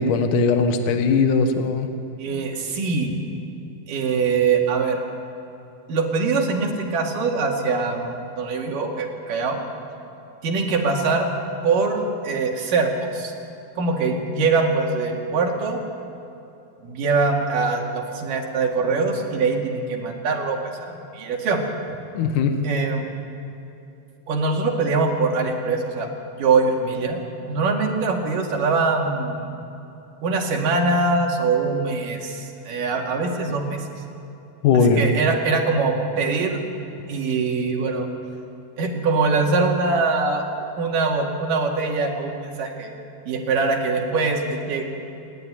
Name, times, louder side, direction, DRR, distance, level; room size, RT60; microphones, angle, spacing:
voice 1, 0.0-1.9 22.2-22.6 34.6-35.0, left 5 dB, 70° left, 6 dB, 2.6 m, -19 dB
voice 2, 2.2-3.1 3.9-5.0 5.9-9.6 10.4-11.3 11.6-13.3 13.8-15.8 16.8-21.6 22.6-23.1 24.3-26.1 26.4-27.2 27.5-29.5 30.2-33.8 34.8-36.6 37.1-38.1 38.8-40.4 40.8-42.9 43.3-44.8, right 4 dB, 70° right, 1 dB, 3.9 m, -23 dB
27.0 x 12.0 x 9.9 m, 2.9 s
omnidirectional pair, 4.1 m